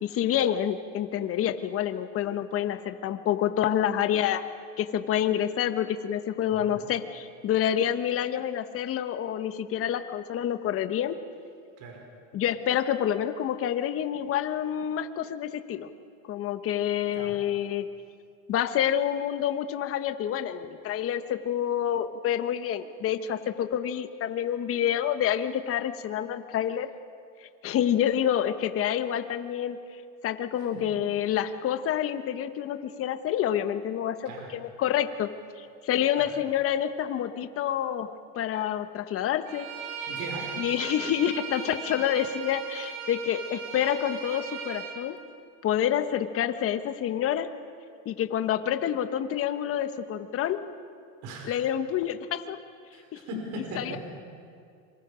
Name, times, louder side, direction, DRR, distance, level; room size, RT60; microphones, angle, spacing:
voice 1, 0.0-4.4 4.8-11.2 12.3-15.9 16.2-17.9 18.5-26.9 27.4-29.8 30.2-35.3 35.6-39.7 40.6-45.2 45.6-47.5 48.0-50.6 51.4-52.6 53.1-53.2 53.7-54.0, left 10 dB, 35° left, 10 dB, 1.2 m, -28 dB
Bowed string instrument, 39.5-45.0, right 5 dB, 90° right, 4.2 m, -37 dB
voice 2, 40.1-40.5 51.2-51.5 52.9-54.0, right 2 dB, 45° right, 1 dB, 5.4 m, -39 dB
26.5 x 25.0 x 5.1 m, 2.3 s
supercardioid pair, 125°, 41 cm